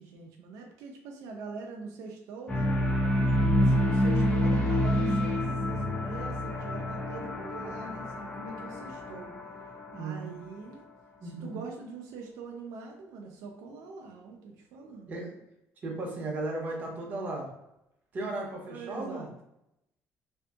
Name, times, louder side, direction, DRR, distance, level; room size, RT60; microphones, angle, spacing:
voice 1, 0.0-2.7 3.5-9.3 9.9-10.9 11.2-15.2 18.7-19.3, right 4 dB, 85° right, 2 dB, 0.4 m, -43 dB
sound 1, 2.5-10.7, equal, 15° left, 0.4 m, -28 dB
voice 2, 3.3-3.7 9.9-10.4 11.2-11.6 15.1-15.4 15.8-17.5 18.1-19.3, right 2 dB, 30° right, -2 dB, 0.7 m, -36 dB
2.6 x 2.5 x 2.3 m, 0.83 s
cardioid pair, 160°, 6 cm